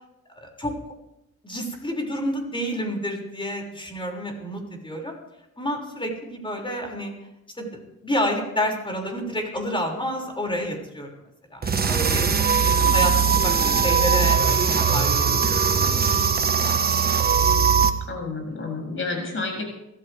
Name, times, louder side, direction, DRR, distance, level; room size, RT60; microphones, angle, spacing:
voice 1, 0.3-0.8 1.4-5.2 5.6-7.1 7.6-7.7 8.0-11.1 11.5-12.2 12.6-15.4 15.7-16.8, equal, 15° left, 1 dB, 6.3 m, -29 dB
sound 1, 11.6-17.9, right 6 dB, 30° right, 1.5 m, -20 dB
voice 2, 12.0-12.7 18.1-19.6, left 3 dB, 40° left, 1 dB, 7.7 m, -31 dB
25.0 x 16.0 x 3.6 m, 0.88 s
cardioid pair, 90°, 30 cm